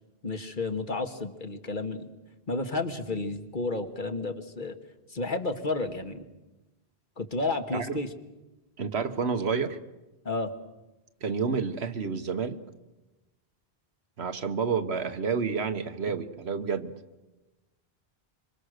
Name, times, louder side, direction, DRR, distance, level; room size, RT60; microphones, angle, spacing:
voice 1, 0.2-2.1 2.5-4.8 5.1-6.2 7.2-8.1 10.3-10.5, left 3 dB, 50° left, 6 dB, 1.8 m, -31 dB
voice 2, 8.8-9.8 11.2-12.6 14.2-16.9, right 5 dB, 75° right, 9 dB, 1.5 m, -29 dB
26.5 x 24.0 x 6.6 m, 1.1 s
omnidirectional pair, 1.1 m